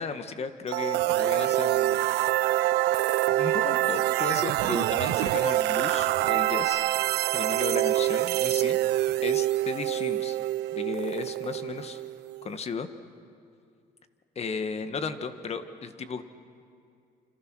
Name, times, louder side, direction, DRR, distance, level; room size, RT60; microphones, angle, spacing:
voice 1, 0.0-2.0 3.3-6.9 7.3-10.4 10.7-12.0 12.4-12.9 14.3-16.2, left 5 dB, 40° left, 9 dB, 1.6 m, -35 dB
sound 1, 0.7-12.5, right 15 dB, 80° right, 0.7 m, -26 dB
28.0 x 27.0 x 6.3 m, 2.4 s
cardioid pair, 110°, 17 cm